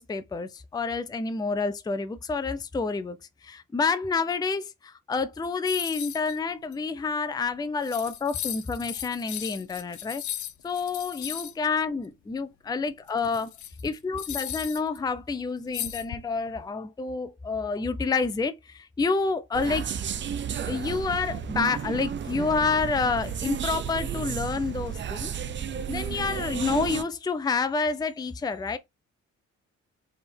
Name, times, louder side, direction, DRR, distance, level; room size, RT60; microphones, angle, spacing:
voice 1, 0.0-3.2 3.4-10.2 10.6-13.5 13.8-19.9 20.6-25.3 25.9-28.8, left 4 dB, 15° left, 0.5 m, -28 dB
sound 1, 5.7-6.4 6.7-6.8 7.5-7.6 7.8-11.5 13.1-15.0 15.7-16.5, left 12 dB, 75° left, 0.7 m, -36 dB
sound 2, 19.5-27.0, right 8 dB, 40° right, 0.6 m, -32 dB
3.6 x 3.3 x 4.3 m
cardioid pair, 90°, 30 cm